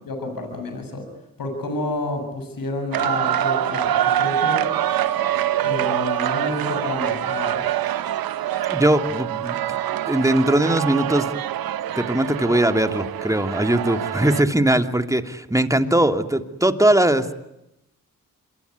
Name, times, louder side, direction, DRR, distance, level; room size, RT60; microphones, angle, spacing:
voice 1, 0.1-1.0 1.4-4.6 5.6-7.7, left 2 dB, 75° left, 5 dB, 7.5 m, -29 dB
sound 1, 2.9-14.4, right 11 dB, 85° right, 1.0 m, -25 dB
voice 2, 8.7-9.8 10.1-11.3 11.9-17.3, right 1 dB, 10° right, 7 dB, 2.9 m, -20 dB
27.0 x 23.0 x 9.6 m, 0.87 s
supercardioid pair, 45°, 35 cm